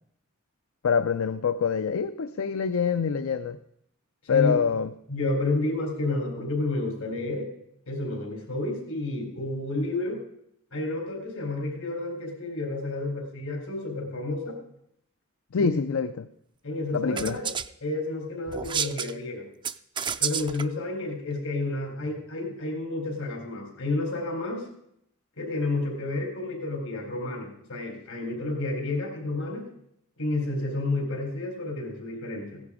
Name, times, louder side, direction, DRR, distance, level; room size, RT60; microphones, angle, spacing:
voice 1, 0.8-3.6 4.3-4.9 15.5-16.3 16.9-17.4, left 6 dB, 70° left, 10 dB, 0.5 m, -25 dB
voice 2, 4.2-4.6 5.1-7.5 7.9-10.2 10.7-14.6 15.6-15.8 16.6-17.5 17.8-19.5 20.2-24.7 25.4-29.6 30.2-32.6, left 2 dB, 90° left, 2 dB, 4.1 m, -30 dB
sound 1, 17.2-17.7 18.5-19.1 19.6-20.6, right 7 dB, 20° right, 0.4 m, -30 dB
16.0 x 11.0 x 5.0 m, 0.75 s
head